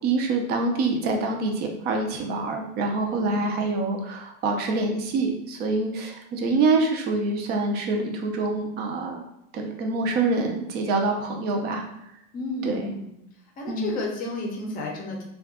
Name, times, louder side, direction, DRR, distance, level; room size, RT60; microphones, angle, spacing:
voice 1, 0.0-9.2 9.5-11.8 12.6-12.9 13.7-13.9, right 3 dB, 35° right, 2 dB, 0.5 m, -26 dB
voice 2, 3.1-3.4 12.3-13.1 13.6-15.2, left 2 dB, 30° left, 1 dB, 0.6 m, -32 dB
2.5 x 2.3 x 3.6 m, 0.82 s
supercardioid pair, 155°, 29 cm